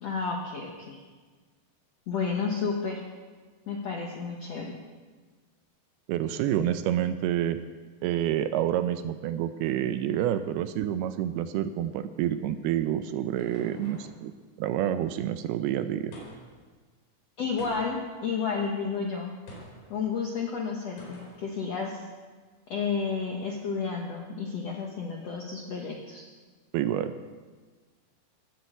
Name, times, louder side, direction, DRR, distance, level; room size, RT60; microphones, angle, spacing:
voice 1, 0.0-1.0 2.1-3.0 3.7-4.8 17.4-19.3 19.9-22.1 22.7-26.2, left 5 dB, 70° left, 0 dB, 1.5 m, -31 dB
voice 2, 6.1-7.6 8.0-14.3 14.6-16.1 26.7-27.1, right 11 dB, 80° right, 10 dB, 2.5 m, -28 dB
sound 1, 12.7-14.2 16.1-16.6 17.6-18.1 19.5-19.9 21.0-21.4, left 1 dB, 85° left, 6.5 m, -46 dB
19.0 x 7.7 x 8.1 m, 1.4 s
omnidirectional pair, 4.8 m